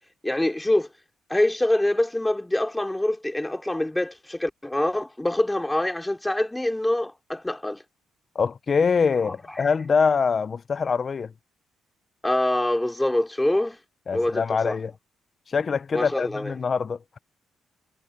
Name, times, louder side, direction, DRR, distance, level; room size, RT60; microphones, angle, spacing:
voice 1, 0.2-0.9 1.3-7.8 9.2-9.3 12.2-13.8 14.1-14.8 15.9-16.5, left 1 dB, 10° left, 2.9 m, -25 dB
voice 2, 8.3-11.3 14.1-14.9 15.5-17.0, left 5 dB, 40° left, 0.6 m, -24 dB
cardioid pair, 90°, 0 cm